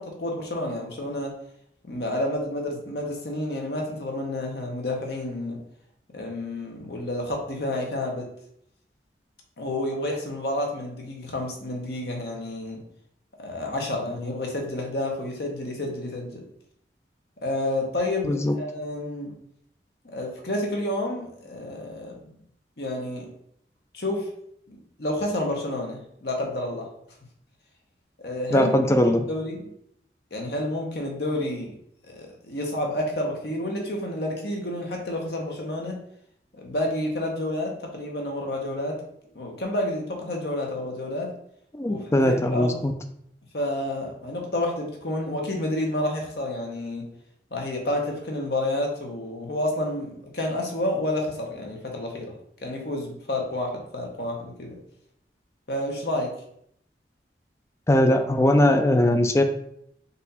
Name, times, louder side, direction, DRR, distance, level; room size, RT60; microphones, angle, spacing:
voice 1, 0.0-1.3 1.8-5.6 6.1-8.3 9.6-12.8 13.4-16.4 17.4-19.3 20.1-22.3 22.8-23.3 23.9-24.3 24.7-26.9 28.2-28.7 29.0-29.7 30.3-31.7 32.0-36.0 36.5-39.0 39.3-41.3 41.9-42.8 43.5-47.0 47.5-52.3 52.6-54.8 55.7-56.3, left 1 dB, 65° left, 1 dB, 1.0 m, -30 dB
voice 2, 18.2-18.5 28.5-29.2 41.7-42.9 57.9-59.4, left 1 dB, 15° left, 7 dB, 0.3 m, -20 dB
4.1 x 2.6 x 4.1 m, 0.70 s
head